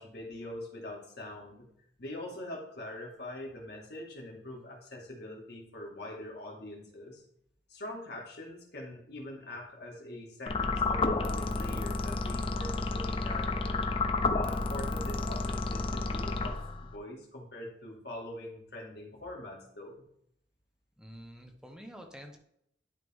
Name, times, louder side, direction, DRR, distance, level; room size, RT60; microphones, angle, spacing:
voice 1, 0.0-1.7 2.0-7.2 7.7-13.9 14.3-20.1, left 1 dB, 65° left, -1 dB, 2.1 m, -43 dB
sound 1, 10.5-17.0, left 3 dB, 30° left, 0.5 m, -31 dB
voice 2, 21.0-22.4, equal, 5° right, 3 dB, 0.9 m, -48 dB
11.0 x 3.7 x 3.6 m, 0.72 s
head